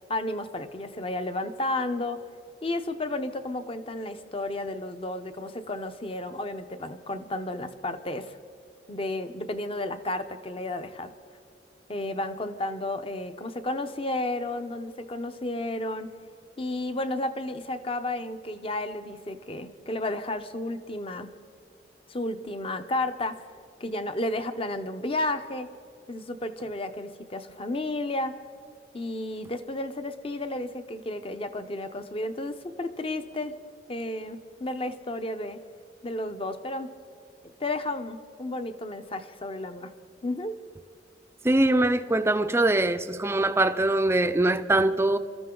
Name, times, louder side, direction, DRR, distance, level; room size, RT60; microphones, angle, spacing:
voice 1, 0.1-2.2 2.6-8.4 8.9-11.1 11.9-16.1 16.6-21.3 22.1-23.3 23.8-25.7 26.1-28.3 28.9-33.5 33.9-35.6 36.0-36.9 37.6-39.9 40.2-40.6, left 2 dB, 30° left, 0.8 m, -32 dB
voice 2, 41.4-45.2, right 2 dB, 15° right, 0.5 m, -23 dB
26.0 x 13.5 x 3.8 m
head